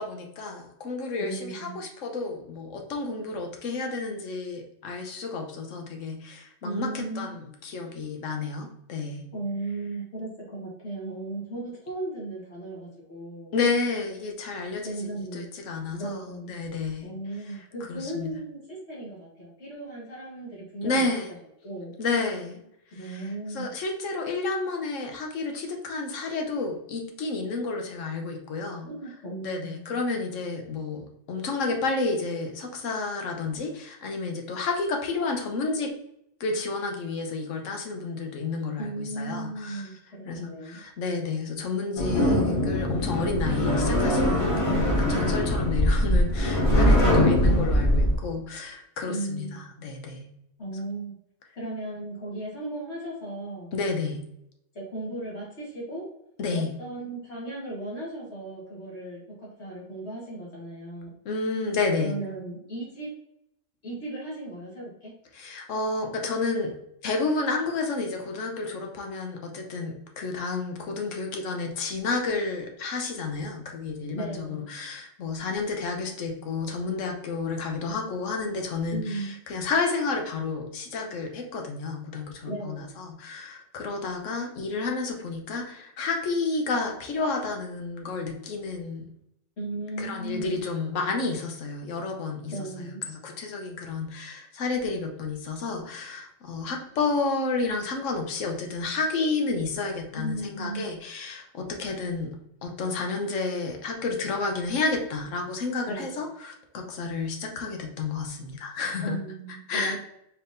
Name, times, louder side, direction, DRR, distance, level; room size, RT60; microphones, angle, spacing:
voice 1, 0.0-9.3 13.5-17.1 17.9-18.3 20.8-21.3 22.0-22.6 23.0-28.9 29.4-35.9 36.4-39.8 40.3-50.3 53.7-54.2 56.4-56.7 61.2-62.1 65.3-66.8 67.0-89.1 90.0-102.3 102.6-109.2 109.7-110.0, left 3 dB, 90° left, 3 dB, 1.2 m, -31 dB
voice 2, 1.2-1.8 6.6-7.3 9.3-13.6 14.8-15.5 15.9-16.5 17.0-21.1 21.6-21.9 22.9-23.7 28.8-30.0 38.8-40.8 46.8-47.5 49.1-49.6 50.6-51.1 51.5-53.7 54.7-56.1 56.5-61.1 62.0-63.1 63.8-65.1 74.1-74.7 78.9-79.3 82.4-82.9 89.6-90.5 92.5-93.0 100.1-100.9 105.9-106.3 109.0-110.0, right 2 dB, 65° left, -6 dB, 1.7 m, -36 dB
sound 1, 42.0-48.1, left 1 dB, 30° left, 1.1 m, -22 dB
4.4 x 3.6 x 2.6 m, 0.78 s
omnidirectional pair, 1.3 m